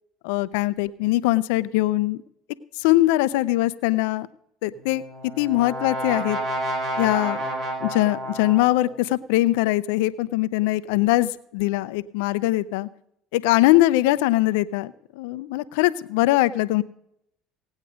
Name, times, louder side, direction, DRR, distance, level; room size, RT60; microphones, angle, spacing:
voice 1, 0.2-2.2 2.8-4.3 4.6-5.0 5.4-6.4 7.0-7.4 7.8-12.9 13.3-16.8, left 17 dB, 75° left, 15 dB, 0.6 m, -22 dB
Brass instrument, 4.8-9.0, right 1 dB, 50° right, 4.2 m, -30 dB
18.5 x 9.1 x 5.0 m, 0.74 s
hypercardioid pair, 80°, 0 cm